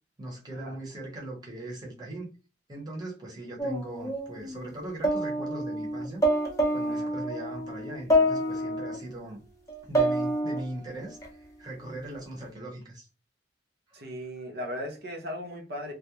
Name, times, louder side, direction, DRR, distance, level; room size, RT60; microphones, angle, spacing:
voice 1, 0.2-2.3 2.7-6.2 6.7-9.4 9.8-13.1 13.9-14.1, right 1 dB, 25° right, 0.8 m, -39 dB
sound 1, 3.6-4.7 5.0-9.0 9.7-11.3, equal, 20° left, 0.6 m, -27 dB
voice 2, 13.9-15.9, equal, 60° right, 0.7 m, -37 dB
2.3 x 2.0 x 2.9 m
head